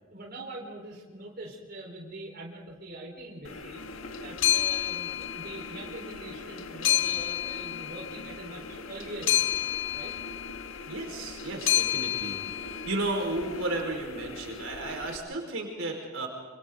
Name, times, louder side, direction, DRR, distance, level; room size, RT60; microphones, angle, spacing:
voice 1, 0.1-3.8 4.2-9.6 9.9-10.2, right 1 dB, 50° right, -2 dB, 4.7 m, -43 dB
sound 1, 3.4-15.2, left 2 dB, 90° left, 1.7 m, -43 dB
sound 2, 3.8-13.7, left 13 dB, 65° left, 0.6 m, -30 dB
voice 2, 10.9-16.3, right 2 dB, 75° right, 1 dB, 5.0 m, -33 dB
28.0 x 26.5 x 4.0 m, 1.4 s
head